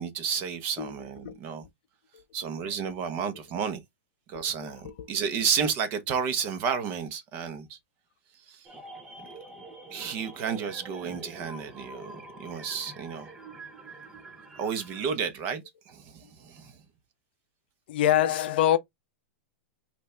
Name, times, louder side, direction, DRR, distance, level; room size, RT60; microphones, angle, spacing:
voice 1, 0.0-1.6 2.3-3.8 4.3-7.8 8.5-8.7 9.9-13.3 14.6-16.7, right 7 dB, 30° right, 0.9 m, -31 dB
voice 2, 4.3-5.1 17.9-18.8, left 11 dB, 50° left, 0.6 m, -26 dB
sound 1, 8.6-15.1, right 2 dB, 10° right, 0.6 m, -46 dB
5.6 x 2.5 x 3.3 m
supercardioid pair, 170°, 7 cm